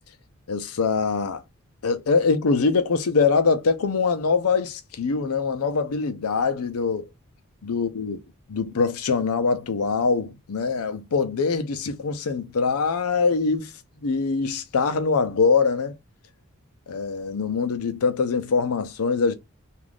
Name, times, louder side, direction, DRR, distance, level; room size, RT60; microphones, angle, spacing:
voice 1, 0.5-1.4 1.8-7.1 7.6-8.2 8.5-13.7 14.0-16.0 16.9-19.3, left 4 dB, 90° left, 0.5 m, -23 dB
2.4 x 2.4 x 3.4 m
head